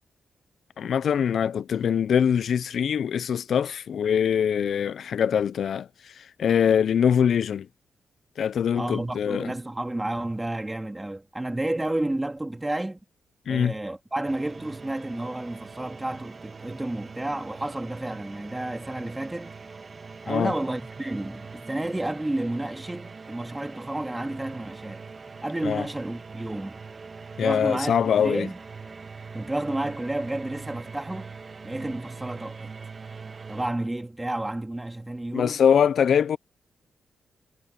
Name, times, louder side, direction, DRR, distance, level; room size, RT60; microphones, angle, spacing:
voice 1, 0.8-7.7 8.4-9.5 13.5-13.7 20.3-20.5 25.6-25.9 27.4-28.5 35.3-36.4, left 8 dB, 75° left, 0.4 m, -23 dB
voice 2, 8.8-13.0 13.5-19.5 20.3-25.0 25.4-26.8 27.4-28.6 29.3-31.3 31.6-32.7 33.5-35.6, right 1 dB, 15° right, 3.3 m, -31 dB
sound 1, 14.3-33.7, right 4 dB, 45° right, 1.4 m, -42 dB
cardioid pair, 70°, 0 cm